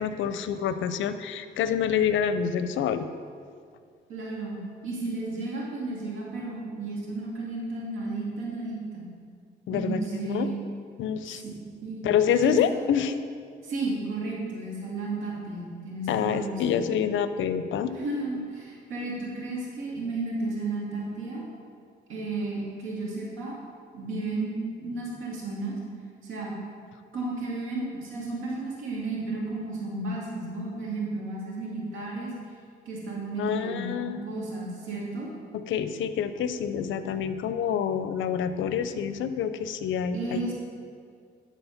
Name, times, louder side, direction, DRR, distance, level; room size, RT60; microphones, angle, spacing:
voice 1, 0.0-3.1 9.7-10.5 11.0-11.4 12.0-13.2 16.1-17.9 33.4-34.3 35.5-40.4, left 8 dB, 75° left, 11 dB, 0.5 m, -27 dB
voice 2, 4.1-9.0 9.7-10.6 11.3-11.5 11.8-12.0 12.3-12.9 13.6-16.8 17.9-21.4 22.1-23.6 23.9-25.8 26.2-26.5 27.1-32.3 32.9-35.3 40.1-40.5, right 2 dB, 90° right, -4 dB, 2.3 m, -33 dB
11.5 x 4.1 x 5.8 m, 2.2 s
cardioid pair, 90°, 20 cm